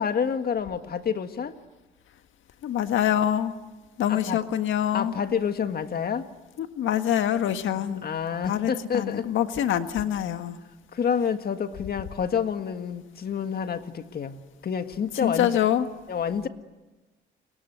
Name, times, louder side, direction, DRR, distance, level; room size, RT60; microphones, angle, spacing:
voice 1, 0.0-1.6 4.1-4.4 4.9-6.3 7.7-9.3 10.9-15.5 16.1-16.5, left 7 dB, 50° left, 9 dB, 1.7 m, -28 dB
voice 2, 2.6-3.5 4.0-5.1 6.6-8.0 8.4-10.6 15.2-15.9, left 10 dB, 75° left, 8 dB, 1.7 m, -25 dB
29.5 x 23.0 x 8.1 m, 1.2 s
cardioid pair, 90°, 20 cm